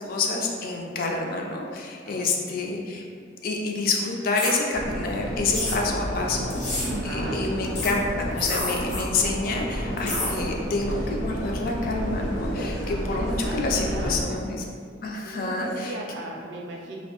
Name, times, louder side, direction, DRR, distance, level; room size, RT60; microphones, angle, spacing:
voice 1, 0.0-3.0 3.4-14.6 15.0-16.0, left 3 dB, 50° left, 0 dB, 0.3 m, -28 dB
voice 2, 2.1-2.9 6.9-7.5 12.8-14.4 15.2-17.0, right 1 dB, 70° right, -1 dB, 0.4 m, -38 dB
sound 1, 4.3-4.5 5.5-5.8 6.5-6.9 7.7-7.9 8.3-9.0 10.0-10.3, left 2 dB, 70° left, 0.7 m, -29 dB
sound 2, 4.7-14.2, equal, 90° left, 0.9 m, -31 dB
2.5 x 2.0 x 2.9 m, 2.1 s
head